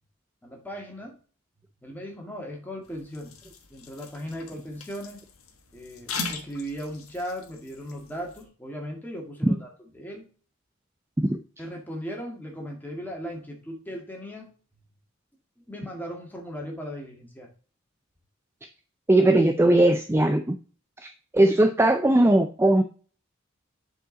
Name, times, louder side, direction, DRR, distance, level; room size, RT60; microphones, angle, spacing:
voice 1, 0.4-1.2 1.8-3.4 3.7-5.2 5.7-10.3 11.6-14.5 15.7-17.5, equal, 10° left, 0 dB, 1.9 m, -37 dB
sound 1, 2.8-8.4, left 4 dB, 80° left, 1.3 m, -40 dB
voice 2, 19.1-20.6 21.0-22.8, right 1 dB, 10° right, 8 dB, 0.4 m, -19 dB
7.9 x 4.7 x 3.9 m, 0.39 s
head